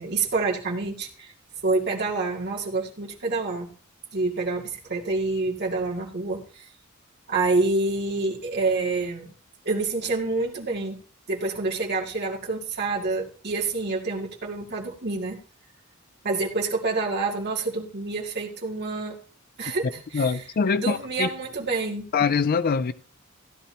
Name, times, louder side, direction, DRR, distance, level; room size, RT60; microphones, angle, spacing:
voice 1, 0.0-1.3 1.6-3.7 4.1-6.7 7.3-9.3 9.6-11.0 11.3-15.4 16.2-19.2 19.6-20.4 20.8-22.0, right 3 dB, 55° right, 2.5 m, -27 dB
voice 2, 20.1-21.3 22.1-22.9, left 5 dB, 45° left, 0.4 m, -23 dB
16.0 x 10.5 x 2.8 m
head